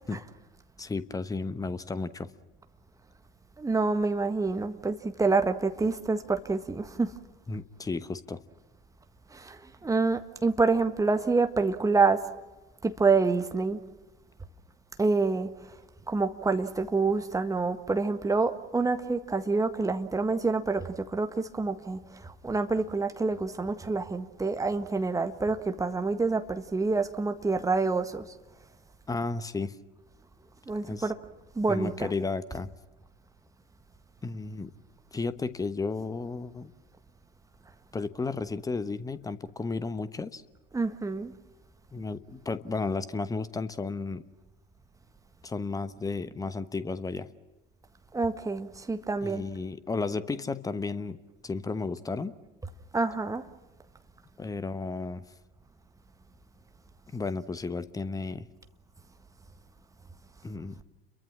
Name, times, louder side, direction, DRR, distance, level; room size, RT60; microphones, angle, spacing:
voice 1, 0.8-2.3 7.5-8.4 29.1-29.8 30.8-31.1 31.7-32.7 34.2-34.7 35.1-36.7 37.9-40.4 41.9-44.3 45.4-47.3 49.2-51.2 51.4-52.3 54.4-55.2 57.1-58.5 60.4-60.8, left 3 dB, 10° left, 1.1 m, -33 dB
voice 2, 3.6-7.1 9.3-12.2 12.8-13.8 15.0-15.5 16.1-28.2 30.7-31.2 31.5-32.1 40.7-41.3 48.1-49.4 52.9-53.4, right 3 dB, 10° right, 1.6 m, -27 dB
29.5 x 23.0 x 6.3 m
figure-of-eight pair, 75°, 32 cm